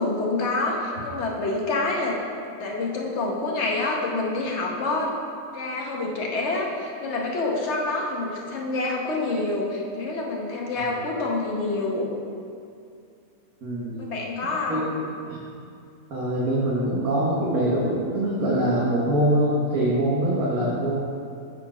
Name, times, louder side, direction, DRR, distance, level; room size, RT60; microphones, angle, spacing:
voice 1, 0.0-2.2 2.5-5.1 5.5-12.1 14.0-14.9, left 2 dB, 50° left, -1 dB, 1.2 m, -27 dB
voice 2, 13.6-14.1 14.7-14.9 15.3-15.4 16.1-20.9, right 1 dB, 70° right, -7 dB, 1.6 m, -24 dB
8.2 x 4.4 x 4.8 m, 2.5 s
omnidirectional pair, 1.6 m